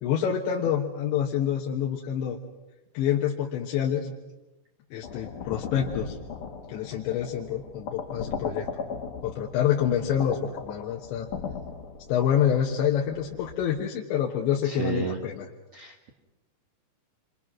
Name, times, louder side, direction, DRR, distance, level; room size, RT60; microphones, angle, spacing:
voice 1, 0.0-2.4 3.0-4.1 4.9-6.2 6.7-8.7 9.2-11.3 12.1-15.5, left 9 dB, 80° left, -1 dB, 3.7 m, -27 dB
sound 1, 5.0-13.7, left 5 dB, 60° left, 2.5 m, -38 dB
voice 2, 14.6-15.2 15.7-16.1, right 5 dB, 50° right, 0 dB, 2.1 m, -32 dB
28.5 x 25.0 x 6.1 m, 1.1 s
omnidirectional pair, 5.2 m